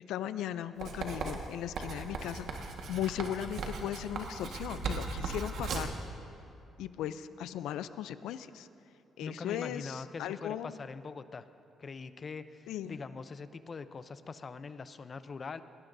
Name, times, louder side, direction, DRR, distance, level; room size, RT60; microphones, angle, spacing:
voice 1, 0.1-5.9 6.8-8.7 9.2-10.8 12.7-13.0, left 11 dB, 90° left, 13 dB, 0.4 m, -37 dB
Writing, 0.8-6.0, right 4 dB, 70° right, 1.5 m, -38 dB
voice 2, 9.2-11.5 11.8-15.6, left 4 dB, 40° left, 12 dB, 0.6 m, -43 dB
21.0 x 18.0 x 2.7 m, 2.7 s
cardioid pair, 90°, 0 cm